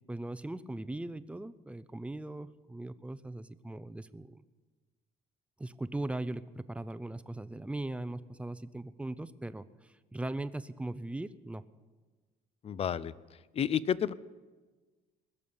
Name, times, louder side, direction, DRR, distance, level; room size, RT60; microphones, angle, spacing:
voice 1, 0.1-4.4 5.6-11.7, right 2 dB, 5° right, 14 dB, 0.6 m, -39 dB
voice 2, 12.6-13.1 13.6-14.1, left 8 dB, 35° left, 19 dB, 0.5 m, -30 dB
21.0 x 7.0 x 9.6 m, 1.3 s
cardioid pair, 110°, 17 cm